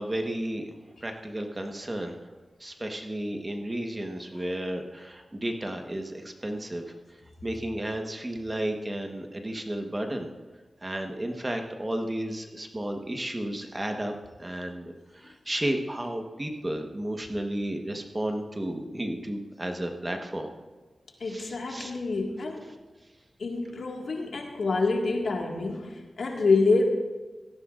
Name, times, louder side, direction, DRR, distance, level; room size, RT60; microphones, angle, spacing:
voice 1, 0.0-2.3 2.6-7.0 7.4-10.3 10.8-20.5 21.3-21.9, right 1 dB, 20° right, 3 dB, 1.2 m, -33 dB
voice 2, 21.2-22.6 23.4-26.8, left 3 dB, 75° left, 1 dB, 1.8 m, -27 dB
17.5 x 14.0 x 2.5 m, 1.3 s
wide cardioid pair, 85°, 0 cm